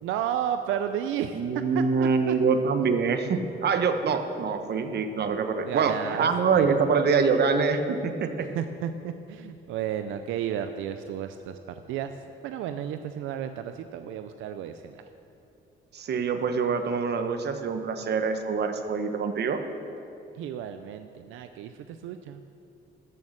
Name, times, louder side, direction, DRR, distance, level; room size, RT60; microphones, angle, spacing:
voice 1, 0.0-1.4 1.7-2.4 5.6-6.3 6.5-6.7 8.4-11.6 11.9-12.1 12.4-15.0 20.3-22.4, right 9 dB, 90° right, 9 dB, 0.5 m, -32 dB
voice 2, 1.3-8.5 15.9-19.6, right 5 dB, 55° right, 7 dB, 1.0 m, -25 dB
13.0 x 6.4 x 7.2 m, 2.7 s
cardioid pair, 90°, 20 cm